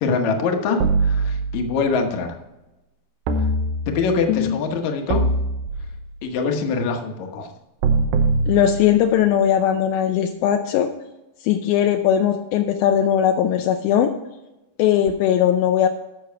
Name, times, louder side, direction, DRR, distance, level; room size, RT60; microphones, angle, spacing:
voice 1, 0.0-2.3 3.9-5.2 6.2-7.5, left 4 dB, 65° left, 4 dB, 2.1 m, -23 dB
sound 1, 0.8-1.9 3.3-4.2 5.1-6.2 7.8-9.2, right 3 dB, 75° right, 2.6 m, -22 dB
voice 2, 8.5-10.9 11.4-14.1 14.8-15.9, left 10 dB, 80° left, 5 dB, 2.3 m, -19 dB
12.5 x 6.1 x 4.6 m, 0.99 s
omnidirectional pair, 4.3 m